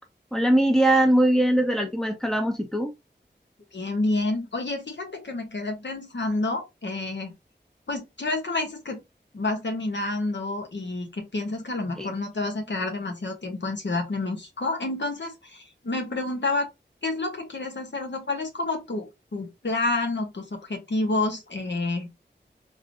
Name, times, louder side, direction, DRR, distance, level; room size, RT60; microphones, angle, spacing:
voice 1, 0.3-2.9 12.0-12.1, right 1 dB, 5° left, 1.0 m, -21 dB
voice 2, 3.7-7.3 7.9-9.0 9.3-16.7 17.0-22.1, left 2 dB, 75° left, 1.1 m, -29 dB
3.9 x 3.1 x 2.6 m
wide cardioid pair, 60°, 18 cm